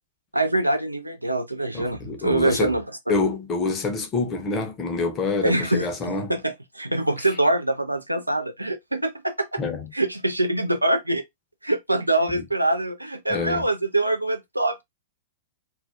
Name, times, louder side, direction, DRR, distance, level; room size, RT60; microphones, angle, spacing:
voice 1, 0.3-2.8 5.4-5.9 6.3-9.6 9.9-11.2 11.6-14.8, right 2 dB, 85° right, 0.5 m, -24 dB
voice 2, 1.7-2.8 3.1-6.4 9.6-9.9 12.3-12.4 13.3-13.6, left 3 dB, 25° left, 0.6 m, -27 dB
2.3 x 2.2 x 2.4 m
figure-of-eight pair, 100°, 0 cm